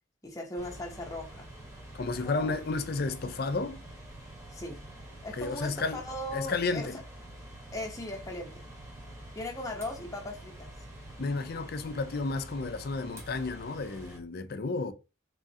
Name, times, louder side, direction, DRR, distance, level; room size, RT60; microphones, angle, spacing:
voice 1, 0.2-1.5 2.2-2.5 4.5-4.9 5.2-6.9 7.7-8.6 9.3-10.7, left 1 dB, 15° left, 0.8 m, -38 dB
sound 1, 0.5-14.2, right 1 dB, 15° right, 1.0 m, -47 dB
voice 2, 1.9-3.8 5.4-6.0 6.3-7.0 11.2-14.9, left 3 dB, 50° left, 0.4 m, -32 dB
3.7 x 3.1 x 2.7 m
head